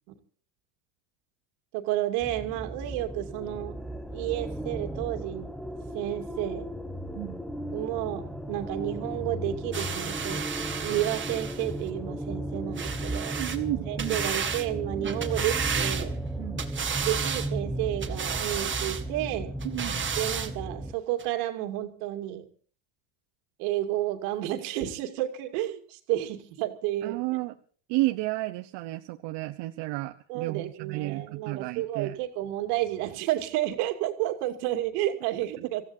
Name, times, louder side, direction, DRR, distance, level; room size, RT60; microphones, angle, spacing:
voice 1, 1.7-3.8 4.1-5.5 5.9-6.7 7.7-10.5 10.8-13.4 13.9-16.2 17.0-19.5 20.2-22.5 23.6-27.2 30.3-35.8, right 14 dB, 80° right, 6 dB, 2.7 m, -31 dB
sound 1, 2.2-20.9, right 1 dB, ahead, 0.9 m, -35 dB
sound 2, 9.7-11.7 12.8-13.6 14.0-14.7 15.0-16.3 16.6-17.5 18.0-19.0 19.6-20.5 21.2-21.3, right 7 dB, 25° right, 2.1 m, -32 dB
voice 2, 13.4-14.2 15.0-15.1 16.4-16.6 19.6-20.1 27.0-27.5 27.9-32.2, right 19 dB, 65° right, 6 dB, 1.1 m, -32 dB
27.0 x 15.5 x 2.8 m, 0.42 s
supercardioid pair, 115°, 45 cm